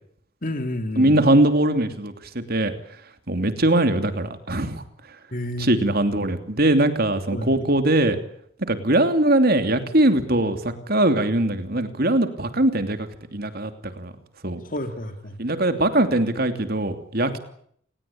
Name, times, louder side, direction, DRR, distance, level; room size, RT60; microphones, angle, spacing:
voice 1, 0.4-1.2 5.3-5.7 7.3-7.7 14.6-15.4, left 1 dB, 40° left, 8 dB, 3.0 m, -30 dB
voice 2, 1.0-2.7 3.3-4.8 5.6-8.2 8.7-13.7 14.0-14.1 14.4-14.6 15.4-17.4, right 1 dB, 50° right, 9 dB, 3.0 m, -21 dB
29.0 x 19.5 x 8.7 m, 0.67 s
head